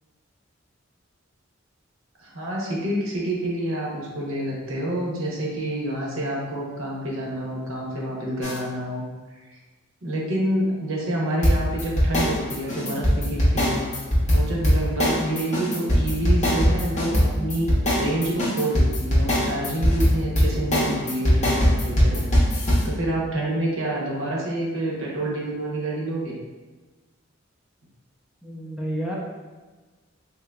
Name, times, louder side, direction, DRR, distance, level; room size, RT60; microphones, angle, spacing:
voice 1, 2.2-9.0 9.5-9.6 10.0-13.9 14.3-22.3 22.8-26.4, right 1 dB, 85° right, -3 dB, 0.8 m, -28 dB
sound 1, 8.4-8.6 11.4-22.8, equal, 35° left, 0.8 m, -20 dB
voice 2, 28.4-29.2, right 1 dB, 5° right, -5 dB, 0.4 m, -30 dB
3.6 x 2.7 x 2.2 m, 1.3 s
head